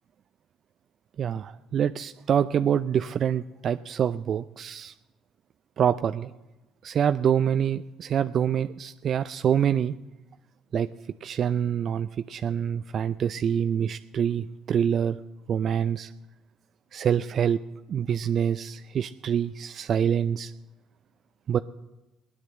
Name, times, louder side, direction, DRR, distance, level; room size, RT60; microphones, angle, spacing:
voice 1, 1.2-4.9 5.8-6.3 6.8-9.9 10.7-10.9 11.2-15.2 15.5-16.1 16.9-17.6 17.9-20.5 21.5-21.6, right 8 dB, 50° right, 11 dB, 0.4 m, -26 dB
18.0 x 9.7 x 7.5 m, 1.1 s
hypercardioid pair, 60°, 0 cm